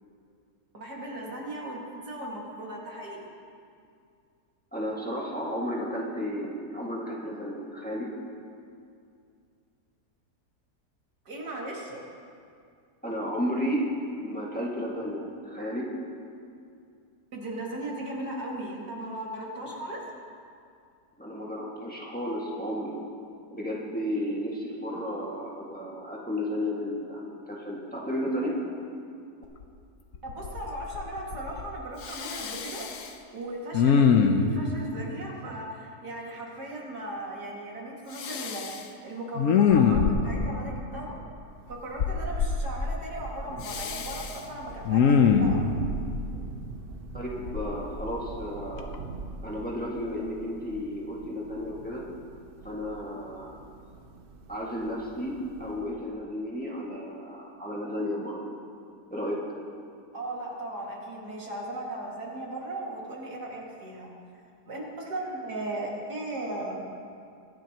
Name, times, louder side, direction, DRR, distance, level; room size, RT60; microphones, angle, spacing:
voice 1, 0.7-3.3 11.3-12.0 17.3-20.0 30.2-32.8 33.3-38.7 39.0-41.2 41.7-45.7 60.1-66.9, right 1 dB, 90° right, -3 dB, 2.8 m, -37 dB
voice 2, 4.7-8.1 13.0-13.8 14.2-15.9 21.2-23.0 23.5-28.6 47.1-49.0 49.4-52.0 52.6-53.6 54.5-58.5 59.1-59.4, equal, 5° left, -5 dB, 1.8 m, -33 dB
Respiratory sounds, 29.6-29.7 30.1-30.7 30.9-31.7 32.0-33.1 33.7-34.6 38.2-38.8 39.3-40.4 42.0-42.6 43.6-44.3 44.8-45.6 47.4-48.4 48.8-49.0, left 6 dB, 60° left, 1.1 m, -23 dB
Thunder, 41.4-56.0, right 3 dB, 45° right, 0.8 m, -42 dB
24.5 x 10.5 x 3.0 m, 2.4 s
omnidirectional pair, 1.7 m